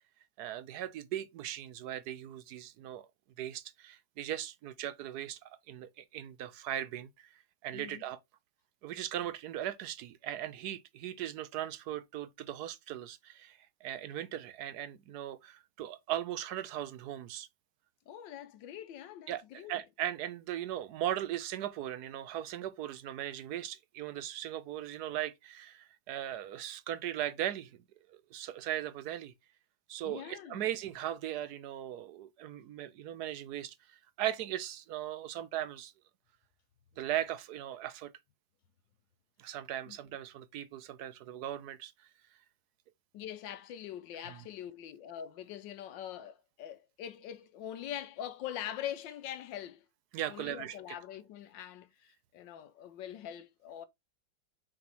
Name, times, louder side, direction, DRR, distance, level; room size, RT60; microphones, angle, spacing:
voice 1, 0.4-3.1 3.4-7.3 7.6-8.2 8.8-17.5 19.3-27.8 28.1-29.3 29.9-35.9 37.0-38.1 39.4-41.9 44.3-44.4 50.1-50.8, right 12 dB, 70° right, 1.0 m, -38 dB
voice 2, 7.7-8.0 18.1-19.8 30.0-30.6 39.9-40.0 43.1-49.8 50.3-53.9, left 10 dB, 75° left, 1.4 m, -43 dB
6.3 x 3.5 x 4.4 m
omnidirectional pair, 2.1 m